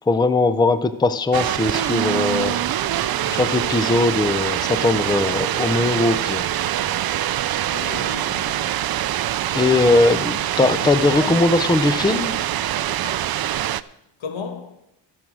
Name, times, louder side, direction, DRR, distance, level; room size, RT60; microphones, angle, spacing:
voice 1, 0.1-2.7 3.4-6.5 9.5-12.3, left 3 dB, 10° left, 0.5 m, -19 dB
sound 1, 1.3-13.8, right 12 dB, 55° right, 0.5 m, -24 dB
voice 2, 3.0-3.5 7.7-9.0 9.7-10.4 11.2-11.8 12.4-12.5 12.8-13.5 14.2-14.7, left 5 dB, 85° left, 1.7 m, -36 dB
14.5 x 6.3 x 6.1 m
cardioid pair, 105°, 46 cm